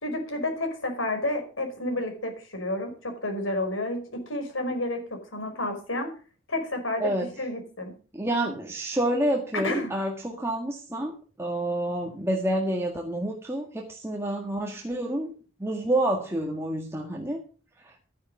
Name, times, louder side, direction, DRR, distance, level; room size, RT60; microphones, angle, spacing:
voice 1, 0.0-6.1 6.5-7.1 7.4-7.9 9.5-9.9, left 1 dB, 85° left, 5 dB, 4.9 m, -30 dB
voice 2, 8.1-15.3 15.6-17.4 17.8-18.0, right 1 dB, 15° right, 0 dB, 1.7 m, -28 dB
13.0 x 10.0 x 5.4 m, 0.38 s
head